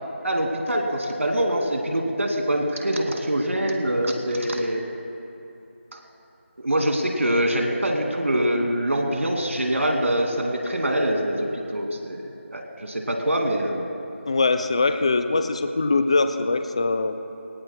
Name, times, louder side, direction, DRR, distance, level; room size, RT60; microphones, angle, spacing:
voice 1, 0.2-4.8 6.6-13.9, right 1 dB, 80° right, 2 dB, 2.3 m, -24 dB
voice 2, 14.3-17.1, left 3 dB, 25° left, 8 dB, 0.4 m, -22 dB
20.5 x 19.0 x 2.2 m, 2.8 s
figure-of-eight pair, 170°, 7 cm